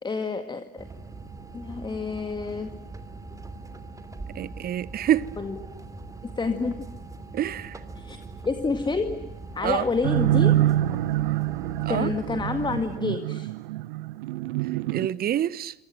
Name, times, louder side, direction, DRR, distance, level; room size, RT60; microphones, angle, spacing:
voice 1, 0.0-0.8 1.5-2.8 5.4-5.6 6.2-6.9 8.0-8.2 8.4-10.6 11.9-13.5, left 4 dB, 15° left, 2.0 m, -29 dB
sound 1, 0.8-13.0, right 3 dB, 10° right, 3.1 m, -41 dB
voice 2, 4.3-5.3 7.3-7.7 9.6-9.8 11.8-12.1 14.9-15.7, right 11 dB, 30° right, 1.0 m, -26 dB
sound 2, 10.0-15.1, right 14 dB, 60° right, 1.0 m, -25 dB
28.0 x 26.5 x 7.8 m
figure-of-eight pair, 70°, 31 cm